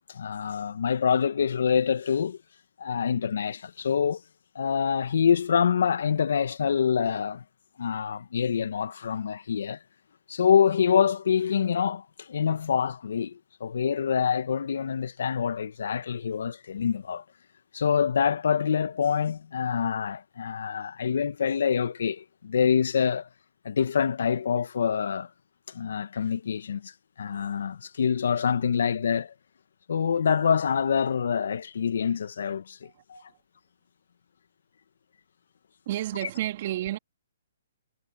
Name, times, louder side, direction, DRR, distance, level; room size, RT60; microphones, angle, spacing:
voice 1, 0.1-2.4 2.8-4.2 4.6-7.4 7.8-9.8 10.3-17.2 17.7-23.3 23.7-25.3 25.7-26.9 27.2-29.3 29.9-33.2, left 7 dB, 70° left, 1.7 m, -26 dB
voice 2, 32.8-33.2 35.9-37.0, right 14 dB, 45° right, 3.9 m, -31 dB
hypercardioid pair, 140°, 0 cm